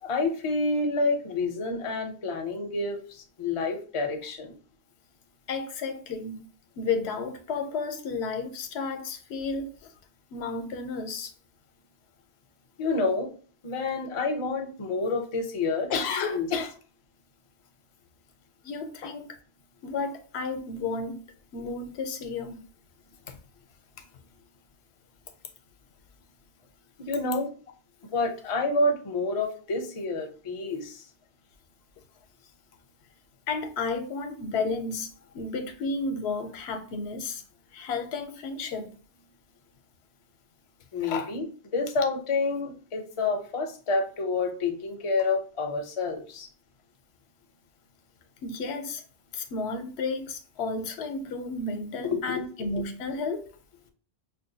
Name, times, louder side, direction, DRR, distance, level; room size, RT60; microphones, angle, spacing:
voice 1, 0.0-4.5 12.8-13.3 13.6-16.5 27.0-27.5 28.1-31.0 40.9-41.5 41.7-46.5 52.0-52.4, left 3 dB, 40° left, 0.5 m, -28 dB
voice 2, 5.5-6.4 6.8-9.9 10.3-11.3 15.9-16.7 18.6-19.3 19.8-21.2 21.5-22.6 23.3-23.4 33.5-35.1 35.3-37.4 37.7-38.9 41.0-41.3 48.4-49.0 49.3-53.5, left 4 dB, 80° left, 0.9 m, -32 dB
5.1 x 2.2 x 2.6 m
omnidirectional pair, 1.1 m